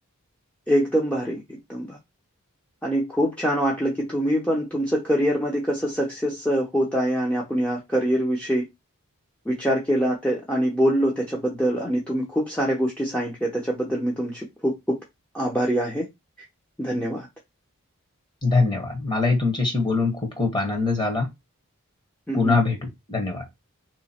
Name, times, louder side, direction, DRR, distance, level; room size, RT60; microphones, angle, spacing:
voice 1, 0.7-2.0 2.8-8.6 9.5-15.0 15.3-16.1 16.8-17.3 22.3-22.6, equal, 5° left, 0.7 m, -24 dB
voice 2, 18.4-21.3 22.3-23.4, left 3 dB, 20° left, 1.2 m, -23 dB
3.3 x 3.1 x 4.2 m
head